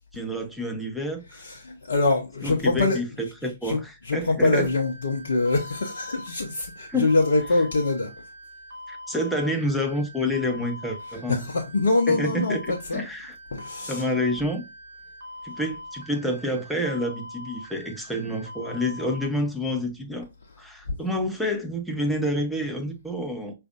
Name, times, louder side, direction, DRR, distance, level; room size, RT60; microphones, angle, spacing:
voice 1, 0.1-1.4 2.4-4.7 6.9-7.1 8.9-11.5 12.1-13.3 13.9-14.6 15.4-20.3 20.6-23.5, left 1 dB, ahead, 0.7 m, -28 dB
voice 2, 1.3-8.1 11.1-13.0 13.5-14.1 20.9-21.0, left 3 dB, 65° left, 0.6 m, -25 dB
sound 1, 4.6-19.3, left 1 dB, 65° right, 0.6 m, -42 dB
4.8 x 2.5 x 2.3 m
figure-of-eight pair, 115°, 0 cm